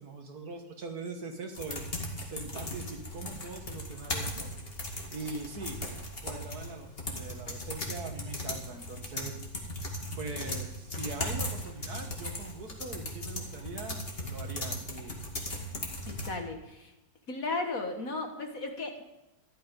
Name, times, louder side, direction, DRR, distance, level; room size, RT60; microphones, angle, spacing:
voice 1, 0.0-1.8 2.3-4.5 5.1-5.8 6.2-9.3 10.2-15.2, right 3 dB, 55° right, 5 dB, 1.8 m, -42 dB
sound 1, 1.5-16.3, left 1 dB, 30° left, 2.3 m, -38 dB
voice 2, 16.1-16.9 17.3-19.0, left 3 dB, 50° left, 4 dB, 1.8 m, -35 dB
14.0 x 11.5 x 5.3 m, 0.93 s
omnidirectional pair, 2.0 m